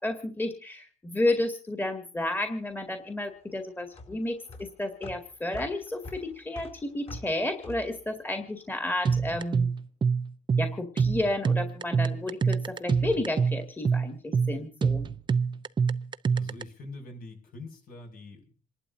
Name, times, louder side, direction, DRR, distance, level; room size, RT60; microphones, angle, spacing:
voice 1, 0.0-9.7 10.6-15.1, left 1 dB, 10° left, 5 dB, 2.1 m, -31 dB
sound 1, 2.6-9.1, left 2 dB, 40° left, 4.4 m, -46 dB
sound 2, 9.1-16.6, right 5 dB, 25° right, 0.7 m, -26 dB
voice 2, 16.3-18.7, left 2 dB, 60° left, 4 dB, 5.9 m, -44 dB
27.5 x 12.0 x 2.6 m, 0.38 s
cardioid pair, 110°, 17 cm